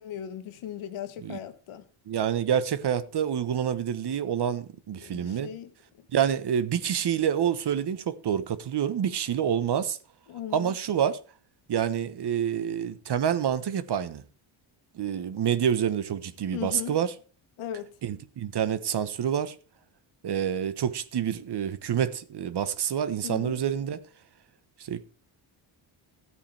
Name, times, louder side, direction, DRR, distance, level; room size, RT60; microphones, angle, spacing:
voice 1, 0.0-1.8 5.0-5.7 10.3-10.8 16.5-17.0 17.6-17.9 23.2-23.6, left 10 dB, 85° left, 1.4 m, -37 dB
voice 2, 2.1-5.5 6.1-10.0 10.5-11.2 11.7-14.2 14.9-17.1 18.0-19.5 20.2-24.0 24.8-25.1, right 9 dB, 55° right, 1.1 m, -27 dB
13.5 x 8.4 x 3.4 m
cardioid pair, 75°, 48 cm